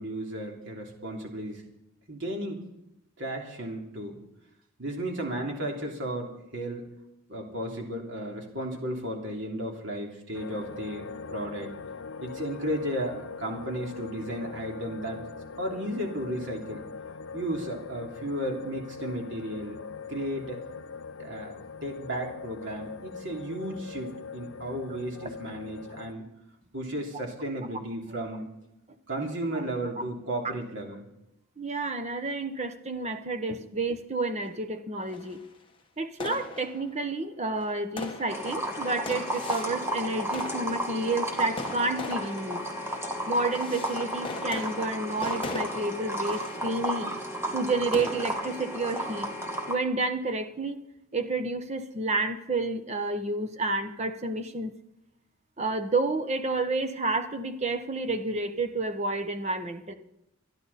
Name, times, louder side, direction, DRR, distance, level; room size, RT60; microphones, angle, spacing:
voice 1, 0.0-1.6 2.1-2.6 3.2-4.2 4.8-6.9 7.3-11.7 12.2-15.2 15.6-16.8 17.3-19.8 20.1-20.6 21.2-26.2 26.7-28.5 29.1-31.1, right 1 dB, 60° right, 1 dB, 3.1 m, -34 dB
sound 1, 10.3-26.1, left 5 dB, 60° left, 0.6 m, -42 dB
voice 2, 31.6-35.4 36.0-42.6 43.3-47.1 47.5-49.3 49.7-50.8 51.1-54.8 55.6-59.9, right 2 dB, 30° right, 8 dB, 1.1 m, -30 dB
sound 2, 34.4-34.5 35.1-35.5 36.2-37.1 37.6-39.9 40.3-47.1 47.9-48.8, left 2 dB, 25° left, 1.3 m, -40 dB
sound 3, 38.3-49.7, right 1 dB, 10° right, 2.1 m, -33 dB
28.0 x 11.0 x 4.2 m, 0.86 s
head